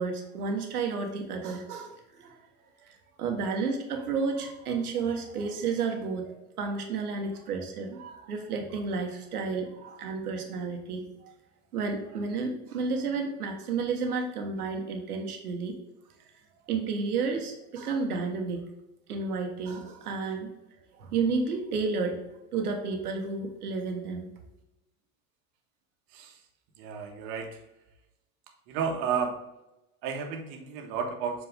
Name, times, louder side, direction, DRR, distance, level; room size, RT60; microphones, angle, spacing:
voice 1, 0.0-2.4 2.8-11.3 11.7-15.8 16.7-18.7 19.1-20.5 21.0-22.2 22.5-24.3, right 4 dB, 90° right, 3 dB, 1.4 m, -31 dB
voice 2, 26.8-27.6 28.7-29.4 30.0-31.5, right 6 dB, 65° right, 4 dB, 1.5 m, -32 dB
7.3 x 4.6 x 3.5 m, 0.94 s
hypercardioid pair, 90°, 44 cm